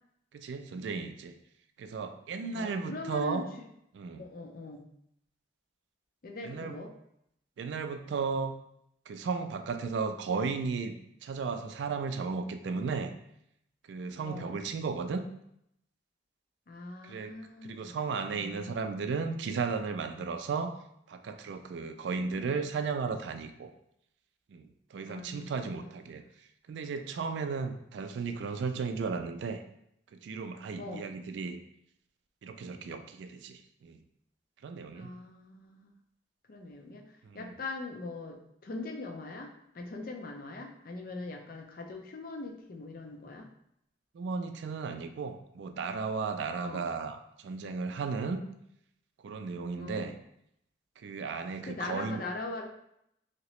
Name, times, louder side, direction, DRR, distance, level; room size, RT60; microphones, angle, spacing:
voice 1, 0.3-1.3 1.8-3.5 3.9-4.3 6.4-6.8 7.6-8.5 9.1-10.9 11.2-13.1 13.9-15.2 17.0-17.4 17.6-20.7 21.1-23.7 24.5-26.2 26.7-29.6 30.1-31.6 32.4-34.0 34.6-35.1 37.2-37.5 44.1-48.4 49.2-50.2 51.0-52.2, right 4 dB, 70° right, 7 dB, 0.3 m, -35 dB
voice 2, 2.5-3.4 4.1-4.8 6.2-6.9 14.2-14.6 16.7-17.9 18.3-18.8 25.1-26.0 30.8-31.1 34.9-35.9 36.5-43.5 46.6-46.9 49.8-50.1 51.7-52.7, left 2 dB, 50° left, 2 dB, 0.4 m, -41 dB
3.0 x 2.8 x 3.0 m, 0.75 s
head